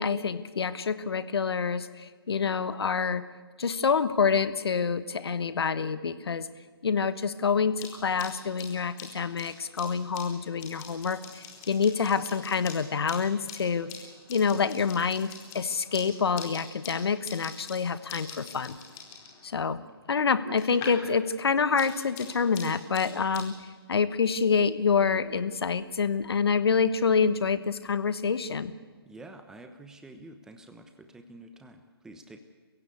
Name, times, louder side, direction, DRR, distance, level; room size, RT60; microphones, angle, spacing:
voice 1, 0.0-3.3 3.6-6.5 6.8-13.9 14.3-18.8 19.4-19.8 20.1-23.6 23.9-28.7, left 5 dB, 70° left, 13 dB, 1.4 m, -27 dB
sound 1, 7.7-21.1 21.4-23.5, left 6 dB, 25° left, 4.4 m, -45 dB
voice 2, 29.1-32.4, right 2 dB, 5° right, 7 dB, 1.0 m, -48 dB
29.0 x 16.0 x 8.5 m, 1.5 s
hypercardioid pair, 145°, 14 cm